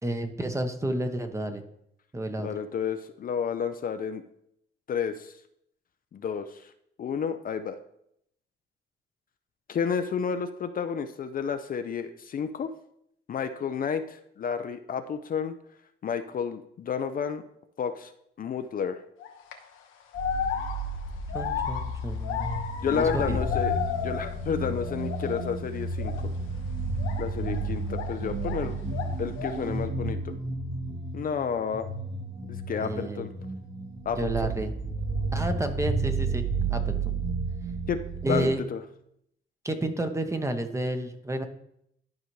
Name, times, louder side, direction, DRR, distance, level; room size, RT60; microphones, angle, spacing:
voice 1, 0.0-1.6 2.1-2.5 21.3-22.5 22.9-23.4 32.8-33.2 34.2-34.7 35.3-37.1 38.2-38.6 39.6-41.5, right 1 dB, 15° right, 7 dB, 0.9 m, -30 dB
voice 2, 2.4-4.2 4.9-5.4 6.1-6.7 7.0-7.8 9.7-12.7 13.3-15.5 16.0-17.4 17.8-18.1 18.4-19.0 22.8-23.7 24.0-26.3 27.2-28.8 29.2-30.3 31.1-31.9 32.4-33.3 34.1-34.5 37.9-38.0 38.3-38.8, left 7 dB, 45° left, 8 dB, 0.5 m, -31 dB
sound 1, 19.2-19.5 20.1-24.5 24.8-25.5 26.0-26.2 27.0-28.7 28.9-29.7, left 8 dB, 90° left, 1.0 m, -33 dB
sound 2, 20.1-38.5, right 3 dB, 50° right, 1.7 m, -32 dB
11.5 x 4.8 x 3.2 m, 0.75 s
cardioid pair, 90°, 20 cm